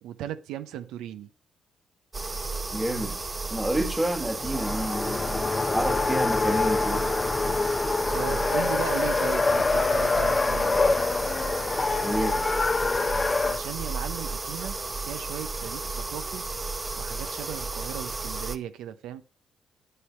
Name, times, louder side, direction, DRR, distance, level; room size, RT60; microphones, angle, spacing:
voice 1, 0.0-1.3 8.1-10.8 13.4-16.4 17.0-19.2, right 11 dB, 90° right, 0.7 m, -37 dB
sound 1, 2.1-18.6, right 3 dB, 25° right, 0.8 m, -33 dB
voice 2, 2.7-3.2 3.5-5.2 5.7-7.1 12.0-12.4, right 1 dB, 5° right, 1.4 m, -29 dB
Race car auto racing, 4.4-13.6, left 3 dB, 30° left, 0.6 m, -25 dB
9.7 x 6.6 x 4.4 m
cardioid pair, 90°, 0 cm